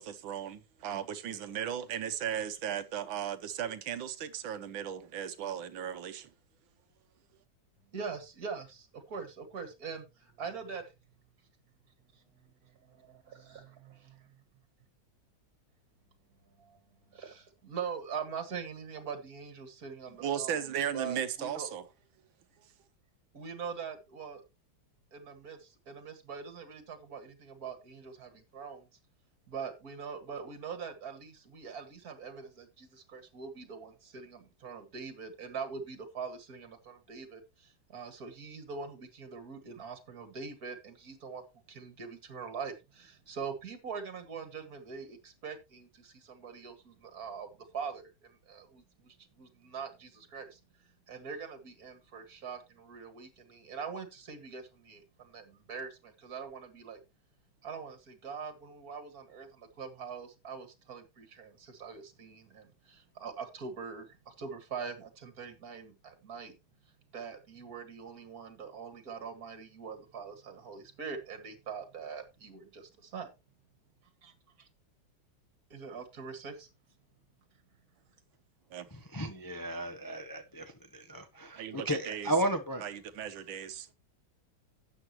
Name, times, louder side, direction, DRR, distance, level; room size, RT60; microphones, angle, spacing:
voice 1, 0.0-6.3 20.2-21.8 78.7-78.9 81.6-82.3 82.8-83.9, right 9 dB, 80° right, 1.6 m, -36 dB
voice 2, 7.9-10.9 12.1-14.4 16.6-16.8 17.1-20.6 20.9-21.7 23.3-24.4 25.1-28.9 29.5-57.0 57.6-66.5 67.1-73.3 74.2-74.3 75.7-76.7, right 5 dB, 50° right, 2.4 m, -43 dB
voice 3, 78.9-82.8, right 1 dB, 30° left, 0.3 m, -34 dB
12.0 x 8.7 x 3.1 m
omnidirectional pair, 2.2 m